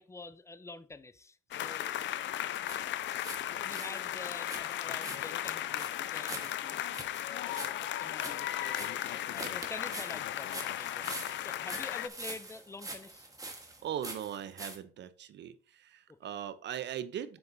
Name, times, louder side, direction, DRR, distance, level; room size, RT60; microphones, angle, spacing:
voice 1, 0.0-2.0 2.6-3.0 3.5-6.8 7.5-13.3 16.1-16.2, left 3 dB, 15° left, 0.5 m, -47 dB
sound 1, 1.5-12.1, left 12 dB, 70° left, 0.5 m, -36 dB
sound 2, 2.7-3.4 3.7-14.8, right 2 dB, 15° right, 1.4 m, -45 dB
voice 2, 13.8-17.4, right 10 dB, 65° right, 0.7 m, -39 dB
7.0 x 6.7 x 2.7 m
cardioid pair, 90°, 20 cm